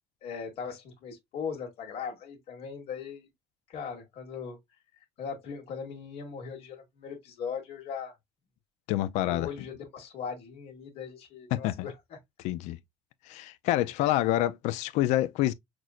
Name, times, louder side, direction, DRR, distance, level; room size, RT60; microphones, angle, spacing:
voice 1, 0.2-3.3 3.7-4.6 5.2-8.1 9.3-11.9, left 6 dB, 55° left, 1.5 m, -39 dB
voice 2, 8.9-9.5 11.5-11.9 12.4-12.8 13.3-15.5, left 14 dB, 80° left, 0.4 m, -27 dB
6.0 x 2.5 x 2.3 m
cardioid pair, 130°, 12 cm